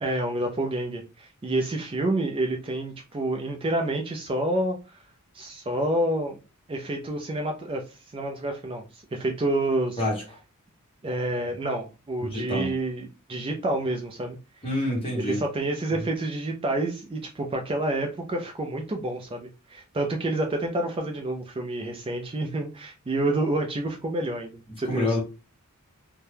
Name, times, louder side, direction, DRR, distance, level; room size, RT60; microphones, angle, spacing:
voice 1, 0.0-5.0 5.3-6.4 6.7-10.0 11.0-14.4 15.1-25.1, right 1 dB, 25° right, 0.4 m, -28 dB
voice 2, 10.0-10.4 12.2-12.7 14.6-15.4 24.8-25.2, left 1 dB, 25° left, 1.2 m, -27 dB
2.7 x 2.2 x 3.3 m
head